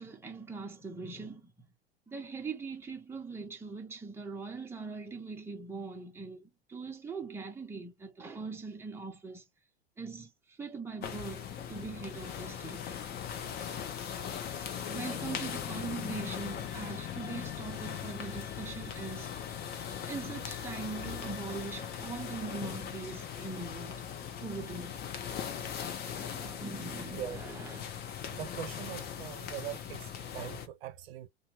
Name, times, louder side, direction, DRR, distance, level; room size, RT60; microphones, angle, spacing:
voice 1, 0.0-1.5 2.1-9.4 10.0-12.9 14.8-19.3 20.0-24.1 24.4-25.0 26.0-28.0, right 4 dB, 5° right, 0.8 m, -41 dB
sound 1, 11.0-30.7, left 8 dB, 30° left, 0.6 m, -39 dB
sound 2, 16.4-23.9, left 10 dB, 50° left, 0.9 m, -52 dB
voice 2, 28.3-31.3, right 11 dB, 65° right, 0.6 m, -42 dB
2.7 x 2.2 x 2.9 m
hypercardioid pair, 95°, 33 cm